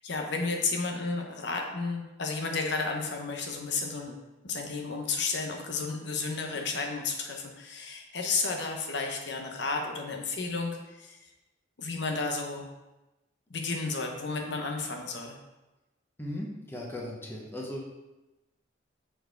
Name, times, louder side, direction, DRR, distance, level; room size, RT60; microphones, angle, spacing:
voice 1, 0.0-4.2 4.4-11.3 11.8-12.7 13.5-15.4, left 4 dB, 60° left, 2 dB, 0.8 m, -32 dB
voice 2, 16.2-17.9, left 1 dB, 10° left, -2 dB, 1.0 m, -37 dB
6.9 x 4.6 x 4.5 m, 1.0 s
head